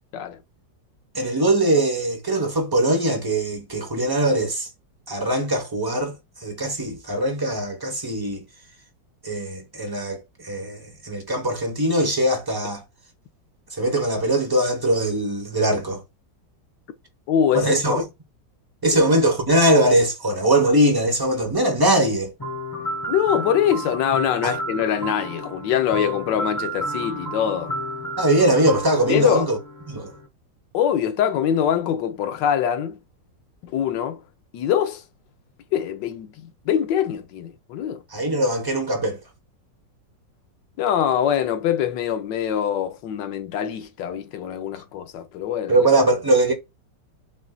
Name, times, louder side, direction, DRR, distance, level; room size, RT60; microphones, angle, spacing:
voice 1, 1.1-4.7 5.1-6.2 6.4-8.4 9.2-12.8 13.7-16.0 17.5-18.0 18.8-22.3 24.4-24.5 28.2-29.6 29.9-30.1 38.1-39.2 45.7-46.5, right 1 dB, 20° right, 0.7 m, -21 dB
voice 2, 17.3-18.0 18.9-19.0 23.1-27.7 29.1-29.5 30.7-33.0 33.6-34.2 34.5-35.0 35.7-38.0 40.8-45.9, left 9 dB, 75° left, 1.4 m, -23 dB
sound 1, 22.4-30.3, right 1 dB, 15° left, 1.0 m, -31 dB
7.1 x 2.5 x 2.3 m
omnidirectional pair, 2.0 m